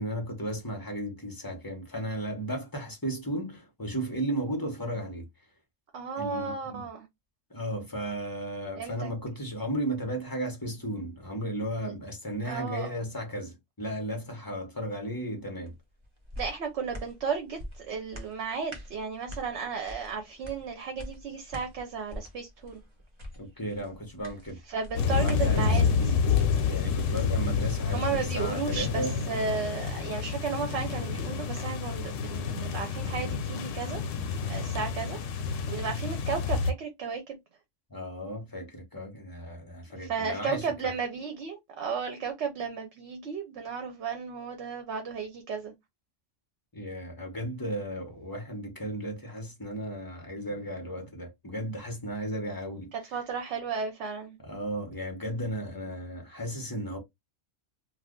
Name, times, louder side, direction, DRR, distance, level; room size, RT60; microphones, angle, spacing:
voice 1, 0.0-5.3 6.2-6.9 7.5-15.7 23.4-24.6 25.1-26.2 26.7-29.2 37.9-40.9 46.7-52.9 54.4-57.0, right 1 dB, 20° left, 0.8 m, -35 dB
voice 2, 5.9-7.1 8.8-9.1 11.8-11.9 12.4-13.1 16.4-22.8 24.7-26.1 27.9-34.0 34.5-35.2 35.7-37.4 40.0-45.7 53.1-54.4, right 5 dB, 65° right, 0.9 m, -34 dB
sound 1, 15.6-29.3 29.7-29.8, equal, 30° right, 0.7 m, -45 dB
sound 2, 24.9-36.7, left 6 dB, 85° left, 0.9 m, -29 dB
2.4 x 2.4 x 3.6 m
omnidirectional pair, 1.3 m